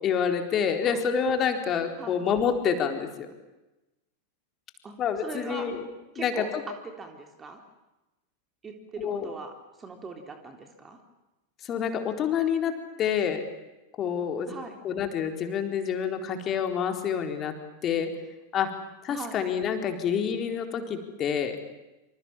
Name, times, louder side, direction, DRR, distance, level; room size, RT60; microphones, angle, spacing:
voice 1, 0.0-3.3 5.0-5.8 6.2-6.6 9.0-9.3 11.6-13.4 14.0-14.5 14.8-17.5 17.8-18.1 18.5-18.7 19.0-21.6, left 7 dB, 30° left, 6 dB, 4.1 m, -27 dB
voice 2, 5.2-5.7 6.1-7.6 8.6-11.0 14.5-14.8 19.1-19.4, right 4 dB, 20° right, 4 dB, 3.6 m, -40 dB
27.5 x 26.5 x 7.3 m, 1.0 s
figure-of-eight pair, 90°, 0 cm